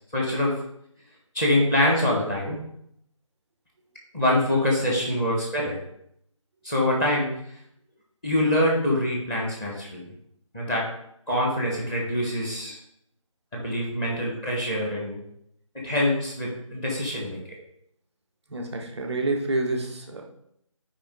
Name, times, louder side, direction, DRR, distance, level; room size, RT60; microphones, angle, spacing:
voice 1, 0.1-0.6 1.3-2.6 4.1-5.8 6.6-7.3 8.2-10.0 10.5-10.8 11.3-12.8 13.5-15.2 15.7-17.4, left 1 dB, 10° left, -3 dB, 1.3 m, -24 dB
voice 2, 18.5-20.2, right 2 dB, 5° right, -9 dB, 0.5 m, -28 dB
8.7 x 5.0 x 3.8 m, 0.74 s
figure-of-eight pair, 160°, 17 cm